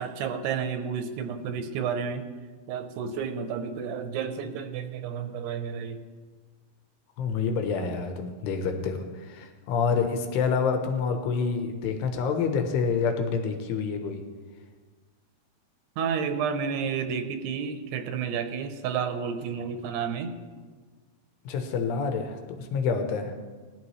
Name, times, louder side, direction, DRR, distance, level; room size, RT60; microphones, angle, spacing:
voice 1, 0.0-2.3 2.7-6.0 16.0-20.3, right 6 dB, 90° right, 7 dB, 3.0 m, -31 dB
voice 2, 7.2-14.2 21.5-23.4, left 5 dB, 90° left, 5 dB, 3.1 m, -27 dB
19.5 x 11.5 x 3.2 m, 1.4 s
omnidirectional pair, 4.6 m